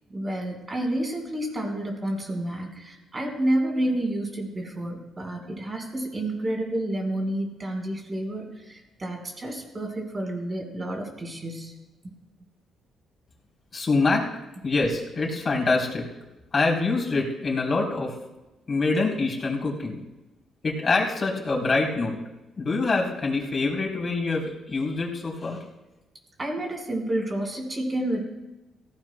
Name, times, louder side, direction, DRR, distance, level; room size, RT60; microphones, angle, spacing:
voice 1, 0.1-11.7 12.0-12.1 26.4-28.2, right 1 dB, 30° right, 1 dB, 4.4 m, -29 dB
voice 2, 13.7-14.3 14.6-16.1 16.5-18.2 18.7-20.0 20.6-22.2 22.6-25.6, left 3 dB, 35° left, -1 dB, 3.6 m, -25 dB
18.0 x 16.0 x 2.2 m, 1.0 s
cardioid pair, 90°, 0 cm